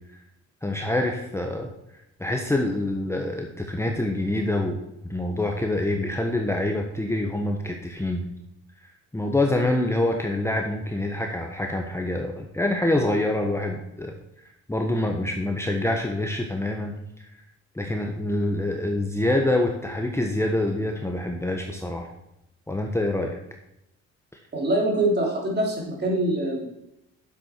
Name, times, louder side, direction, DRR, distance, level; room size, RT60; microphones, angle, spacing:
voice 1, 0.6-1.7 2.2-8.3 8.8-17.3 17.7-22.1 22.7-23.4, left 1 dB, 10° left, 2 dB, 1.2 m, -26 dB
voice 2, 24.5-26.6, right 1 dB, 35° right, -1 dB, 3.5 m, -24 dB
9.7 x 7.6 x 4.6 m, 0.87 s
cardioid pair, 90°, 30 cm